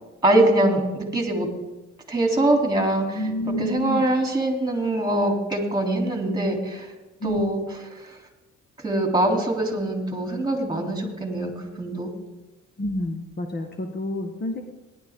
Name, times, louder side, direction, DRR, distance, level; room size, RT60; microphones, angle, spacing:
voice 1, 0.2-1.5 2.1-3.2 3.6-6.9 7.2-7.6 7.9-8.2 8.8-12.1, right 1 dB, 15° right, 2 dB, 3.2 m, -23 dB
voice 2, 3.1-4.1 7.2-7.5 12.8-14.6, left 1 dB, 35° left, 4 dB, 1.3 m, -28 dB
18.0 x 11.0 x 3.7 m, 1.1 s
cardioid pair, 90°, 30 cm